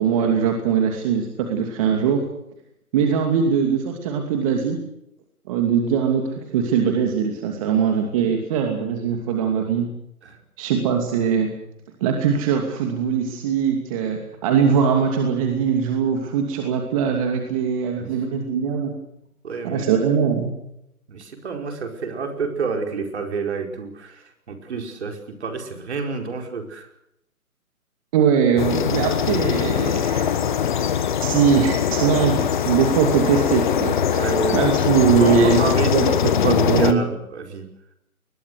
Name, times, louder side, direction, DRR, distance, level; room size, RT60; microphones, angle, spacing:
voice 1, 0.0-2.2 2.9-4.8 5.5-9.9 10.6-11.5 12.0-18.9 19.6-20.5 28.1-30.7 31.2-37.0, right 7 dB, 25° right, 3 dB, 2.7 m, -21 dB
voice 2, 19.4-19.9 21.1-26.9 34.1-34.6 35.2-37.7, right 5 dB, 50° right, 5 dB, 4.9 m, -29 dB
sound 1, 28.6-36.9, left 8 dB, 35° left, 1.5 m, -21 dB
23.0 x 21.5 x 6.5 m, 0.78 s
figure-of-eight pair, 150°, 43 cm